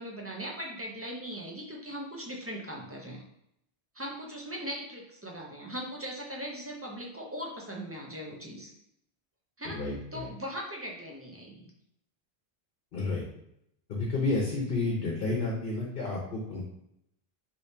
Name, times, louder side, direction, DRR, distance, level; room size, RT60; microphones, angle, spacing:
voice 1, 0.0-3.2 3.9-8.7 9.6-9.8 10.1-11.7, equal, 25° right, -1 dB, 0.3 m, -39 dB
voice 2, 9.6-10.3 12.9-13.2 13.9-16.6, left 3 dB, 60° left, -2 dB, 0.9 m, -31 dB
3.0 x 2.7 x 3.2 m, 0.77 s
omnidirectional pair, 1.0 m